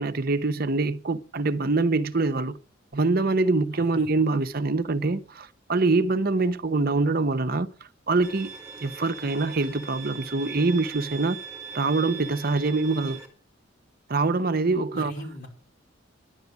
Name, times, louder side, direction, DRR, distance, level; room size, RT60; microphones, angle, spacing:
voice 1, 0.0-2.6 2.9-7.7 8.1-8.5 8.8-11.4 11.7-13.2 14.1-15.3, right 3 dB, 50° right, 0.8 m, -24 dB
voice 2, 3.7-4.2 14.9-15.5, left 1 dB, 50° left, 4.8 m, -41 dB
Bowed string instrument, 8.2-13.3, right 5 dB, 15° right, 2.8 m, -40 dB
11.0 x 8.3 x 9.3 m
head